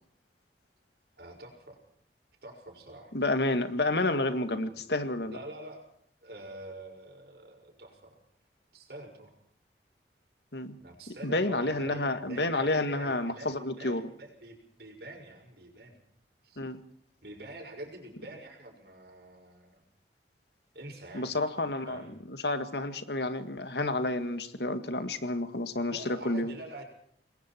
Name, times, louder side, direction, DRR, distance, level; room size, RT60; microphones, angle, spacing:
voice 1, 1.2-1.8 2.4-3.1 4.5-4.8 5.2-5.9 6.2-8.2 8.7-9.3 10.8-16.0 16.4-16.6 17.2-19.8 20.7-21.3 21.9-22.1 25.9-26.8, right 1 dB, 60° right, 3 dB, 6.3 m, -46 dB
voice 2, 3.1-5.4 10.5-10.8 11.2-14.0 16.6-16.8 21.1-26.5, left 2 dB, 70° left, 10 dB, 1.9 m, -30 dB
28.0 x 21.5 x 4.5 m, 0.66 s
head